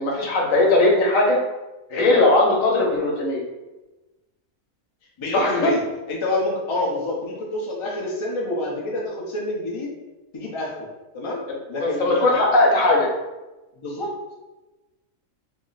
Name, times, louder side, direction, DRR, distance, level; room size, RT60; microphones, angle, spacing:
voice 1, 0.0-1.4 1.9-3.5 5.3-5.7 11.8-13.1, left 2 dB, 80° left, -1 dB, 1.2 m, -19 dB
voice 2, 5.2-5.8 6.1-9.9 10.3-10.9 11.1-11.4 11.7-12.6 13.8-14.1, left 2 dB, 35° left, -3 dB, 0.5 m, -27 dB
3.2 x 2.1 x 3.8 m, 1.1 s
omnidirectional pair, 1.4 m